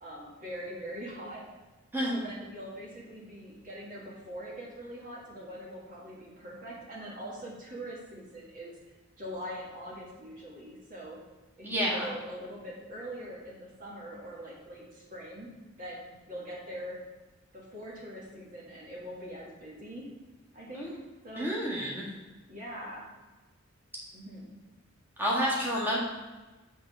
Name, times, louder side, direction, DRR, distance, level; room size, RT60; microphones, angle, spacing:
voice 1, 0.0-1.4 2.1-8.8 9.2-11.2 11.6-15.5 15.8-17.0 17.5-20.1 20.5-20.9 21.2-21.5 22.5-23.1 24.1-24.5, equal, 45° right, -4 dB, 1.7 m, -42 dB
voice 2, 11.6-12.0 20.7-20.9 21.4-22.1 25.2-26.0, equal, 10° right, -7 dB, 1.7 m, -29 dB
7.8 x 3.8 x 6.1 m, 1.2 s
head